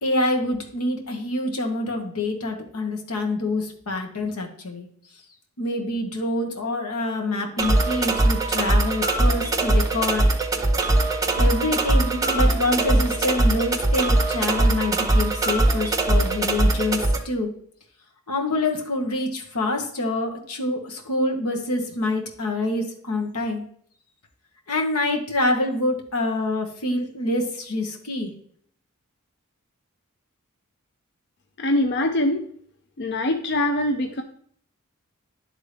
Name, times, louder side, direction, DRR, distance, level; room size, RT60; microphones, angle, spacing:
voice 1, 0.0-4.9 5.6-10.3 11.4-17.5 18.3-23.6 24.7-28.3, left 2 dB, 90° left, 2 dB, 1.3 m, -26 dB
sound 1, 7.6-17.2, right 2 dB, 15° right, 0.7 m, -21 dB
voice 2, 31.6-32.4 33.0-34.2, left 1 dB, 50° left, 5 dB, 0.5 m, -23 dB
11.0 x 3.7 x 3.3 m, 0.62 s
head